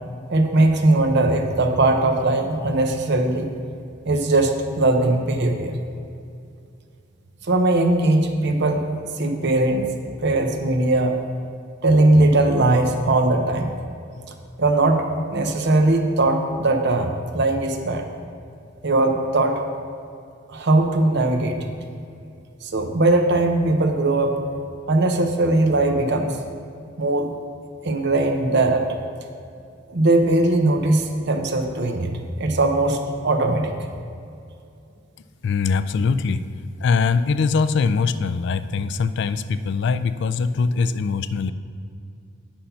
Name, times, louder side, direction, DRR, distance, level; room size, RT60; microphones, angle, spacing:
voice 1, 0.3-3.5 4.0-5.8 7.4-8.8 9.2-9.9 10.2-11.2 11.8-13.7 14.6-18.1 18.8-19.6 20.5-21.7 22.6-24.4 24.9-26.4 27.0-27.3 27.8-28.9 29.9-32.1 32.4-33.7, right 2 dB, 55° right, 5 dB, 0.8 m, -19 dB
voice 2, 35.4-36.5 36.8-41.5, left 5 dB, 60° left, 13 dB, 0.3 m, -22 dB
8.7 x 5.7 x 5.6 m, 2.5 s
head